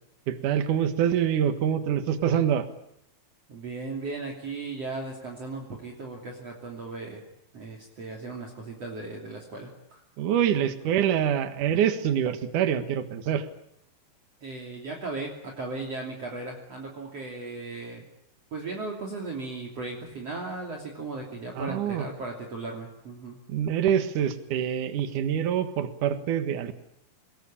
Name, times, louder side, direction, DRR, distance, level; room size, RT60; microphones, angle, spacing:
voice 1, 0.3-2.6 10.2-13.5 21.5-22.1 23.5-26.7, right 9 dB, 60° right, 10 dB, 2.9 m, -25 dB
voice 2, 3.5-7.2 7.5-10.0 14.4-18.1 18.5-23.4, right 3 dB, 40° right, 0 dB, 3.8 m, -37 dB
25.0 x 21.0 x 8.8 m, 0.76 s
omnidirectional pair, 4.4 m